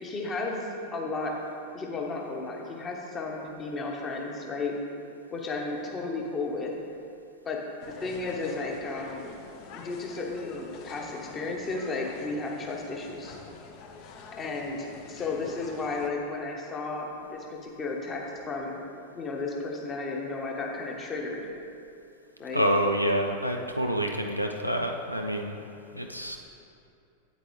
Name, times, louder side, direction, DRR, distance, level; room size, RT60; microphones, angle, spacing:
voice 1, 0.0-1.4 1.7-4.7 5.3-6.7 7.4-9.3 9.7-13.4 14.3-18.8 19.1-21.4 22.4-22.7, left 3 dB, 25° left, 0 dB, 1.1 m, -33 dB
sound 1, 7.8-16.1, left 5 dB, 40° left, 0.7 m, -46 dB
voice 2, 22.5-25.6 25.9-26.4, equal, 90° left, 3 dB, 0.5 m, -27 dB
8.8 x 8.2 x 3.2 m, 2.6 s
figure-of-eight pair, 90°, 0 cm